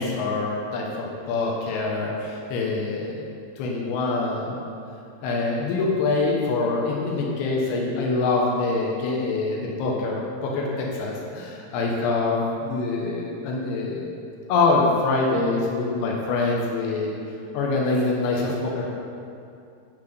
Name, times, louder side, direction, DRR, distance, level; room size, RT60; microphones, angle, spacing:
voice 1, 0.0-3.2 3.6-4.6 5.2-14.1 14.5-17.1 17.5-18.9, left 3 dB, 85° left, -2 dB, 3.4 m, -25 dB
13.0 x 6.0 x 8.2 m, 2.5 s
omnidirectional pair, 4.5 m